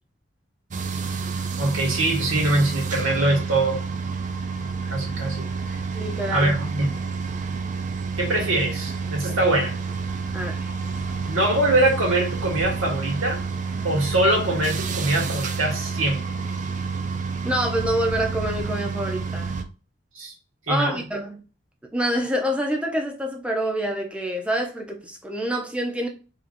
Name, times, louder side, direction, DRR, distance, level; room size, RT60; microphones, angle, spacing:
sound 1, 0.7-19.6, right 5 dB, 35° right, 0.4 m, -29 dB
voice 1, 1.6-3.8 4.9-5.7 6.3-7.0 8.2-9.8 11.3-13.4 13.8-16.2 20.1-20.3 20.7-21.0, right 1 dB, 85° right, 1.9 m, -23 dB
voice 2, 5.9-6.5 10.3-10.7 13.8-13.9 17.4-19.5 20.7-21.4 21.9-26.1, right 1 dB, 5° right, 0.7 m, -26 dB
4.9 x 2.9 x 2.6 m
head